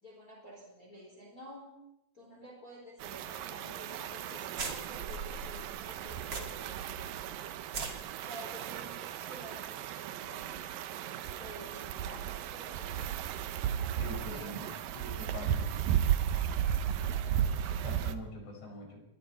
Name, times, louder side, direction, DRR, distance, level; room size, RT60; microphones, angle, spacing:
voice 1, 0.0-1.8 2.1-7.3 8.2-10.7 11.3-13.1 14.3-14.7 16.5-17.2, equal, 20° left, -1 dB, 4.4 m, -51 dB
sound 1, 3.0-18.1, right 10 dB, 75° right, 2.4 m, -35 dB
sound 2, 3.8-3.9 4.2-4.3 4.6-6.8 7.1-7.2 7.6-7.9, right 4 dB, 35° right, 2.5 m, -39 dB
voice 2, 14.0-15.7 17.8-19.0, left 2 dB, 80° left, 1 dB, 7.1 m, -44 dB
26.5 x 23.0 x 4.4 m, 0.86 s
omnidirectional pair, 4.7 m